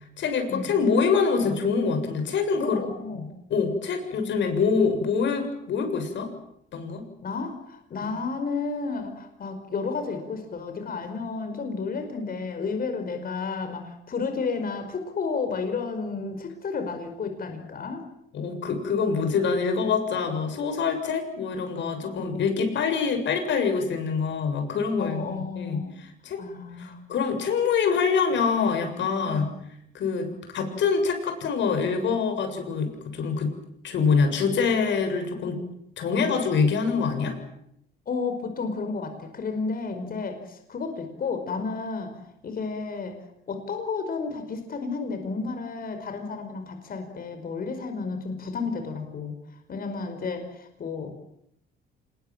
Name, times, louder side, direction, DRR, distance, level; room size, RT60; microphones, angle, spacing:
voice 1, 0.2-2.8 3.1-6.3 6.7-7.1 8.0-8.1 18.3-26.4 26.8-29.5 29.9-33.5 33.8-35.6 36.0-37.4, left 5 dB, 70° left, 7 dB, 7.3 m, -25 dB
voice 2, 2.6-3.3 7.2-18.0 25.0-25.9 26.4-27.0 29.3-29.5 30.3-30.4 38.1-42.1 42.4-43.2 43.5-49.3 49.7-51.1, left 4 dB, 50° left, 6 dB, 5.3 m, -32 dB
27.0 x 21.5 x 9.1 m, 0.75 s
cardioid pair, 105°, 20 cm